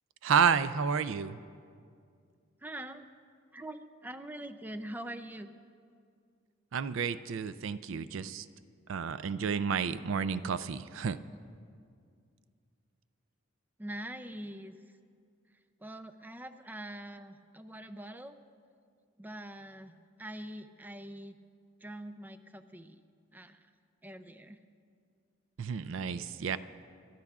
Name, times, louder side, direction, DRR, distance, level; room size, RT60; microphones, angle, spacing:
voice 1, 0.2-1.4 6.7-8.5 8.9-11.2 25.6-26.6, right 6 dB, 70° right, 13 dB, 0.4 m, -30 dB
voice 2, 2.6-3.1 3.5-5.5 13.8-14.7 15.8-18.4 19.2-21.4 21.8-23.0 23.3-23.6 24.0-24.6, right 1 dB, 10° right, 9 dB, 0.4 m, -44 dB
29.0 x 13.0 x 2.4 m, 2.2 s
head